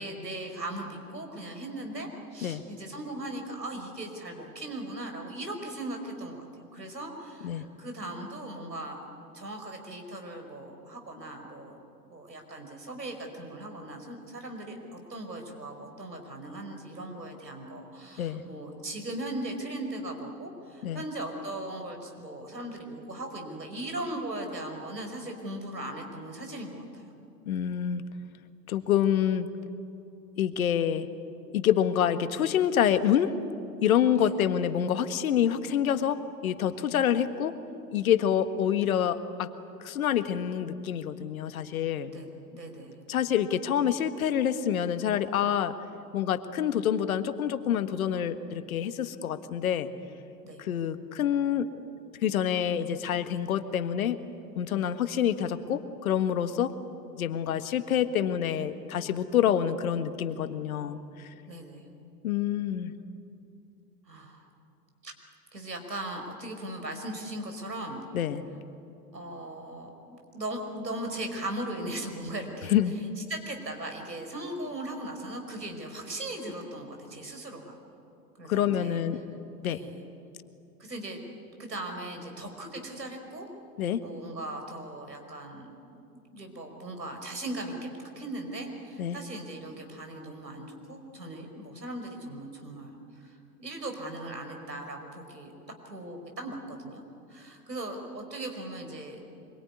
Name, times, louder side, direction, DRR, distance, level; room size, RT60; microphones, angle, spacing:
voice 1, 0.0-9.0 9.3-11.8 12.1-27.0 34.1-34.3 42.1-43.0 50.4-50.6 61.5-61.9 64.1-64.4 65.0-65.1 65.5-68.0 69.1-72.8 73.2-77.8 78.4-79.0 79.6-80.0 80.8-81.2 81.6-83.5 84.0-95.5 95.8-97.0 97.3-99.2, right 1 dB, 85° right, 3 dB, 5.1 m, -38 dB
voice 2, 27.4-28.0 28.7-29.5 30.4-31.1 31.5-33.3 33.8-37.6 37.9-39.5 39.8-42.1 43.1-45.7 46.1-49.9 50.6-51.7 52.2-54.2 54.5-56.7 57.1-61.0 62.2-62.9 68.1-68.4 72.7-72.9 78.5-79.2 79.6-79.8 83.8-84.0 89.0-89.2, left 9 dB, 60° left, 10 dB, 1.6 m, -27 dB
25.0 x 23.0 x 9.8 m, 2.7 s
figure-of-eight pair, 100°, 49 cm